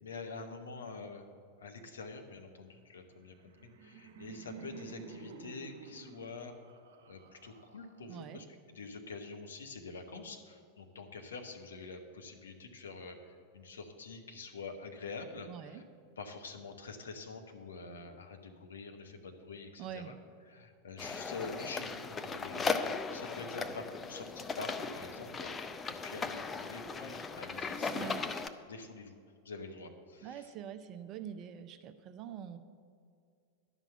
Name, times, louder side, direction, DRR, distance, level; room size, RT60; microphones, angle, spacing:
voice 1, 0.0-1.3 1.6-3.3 3.6-6.5 7.1-8.4 8.7-15.8 16.2-20.1 20.5-28.3 28.7-29.2 29.4-30.5, left 4 dB, 70° left, 4 dB, 1.1 m, -46 dB
Laughter, 3.3-8.3, right 6 dB, 55° right, 1.2 m, -51 dB
voice 2, 8.1-8.4 15.5-15.8 19.8-20.1 27.9-28.3 30.2-32.6, right 9 dB, 35° right, 10 dB, 0.6 m, -44 dB
sound 1, 21.0-28.5, left 4 dB, 20° left, 0.5 m, -37 dB
11.0 x 6.1 x 7.7 m, 2.3 s
figure-of-eight pair, 90°, 0 cm